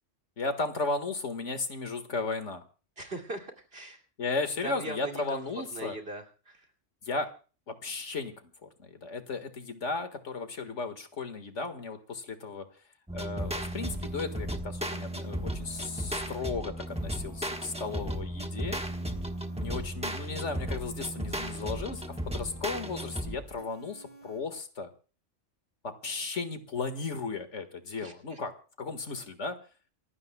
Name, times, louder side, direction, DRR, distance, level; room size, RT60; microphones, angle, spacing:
voice 1, 0.4-2.6 4.2-6.0 7.0-7.3 7.7-12.7 13.1-18.8 19.6-24.9 25.8-28.5 28.8-29.6, left 4 dB, 70° left, 9 dB, 2.0 m, -35 dB
voice 2, 3.0-4.0 4.6-6.7 28.0-28.4, right 1 dB, 50° right, 1 dB, 2.9 m, -40 dB
sound 1, 13.1-23.6, right 1 dB, 5° right, 1.2 m, -35 dB
sound 2, 13.4-14.5 15.0-16.4 16.9-18.2 18.7-19.9 20.4-21.5 22.0-23.1 23.6-24.4, equal, 30° right, 6.8 m, -53 dB
28.0 x 16.5 x 2.3 m, 0.37 s
omnidirectional pair, 1.3 m